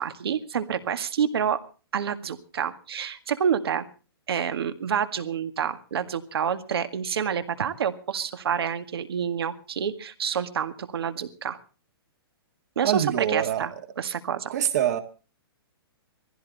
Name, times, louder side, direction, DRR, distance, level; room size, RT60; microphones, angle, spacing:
voice 1, 0.0-1.6 1.9-3.9 4.3-11.6 12.8-13.7 14.0-14.5, right 8 dB, 70° right, 1.9 m, -28 dB
voice 2, 12.8-13.7 14.5-15.0, right 10 dB, 40° right, 1.7 m, -24 dB
20.0 x 15.5 x 4.1 m
hypercardioid pair, 170°, 13 cm